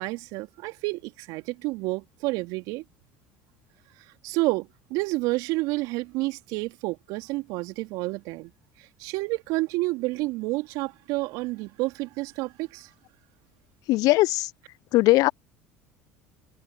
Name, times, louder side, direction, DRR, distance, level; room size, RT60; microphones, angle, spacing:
voice 1, 0.0-2.8 4.2-8.5 8.8-12.9, right 22 dB, 65° right, 2.9 m, -29 dB
voice 2, 13.9-14.5 14.9-15.3, left 19 dB, 60° left, 0.6 m, -19 dB
hypercardioid pair, 70°, 7 cm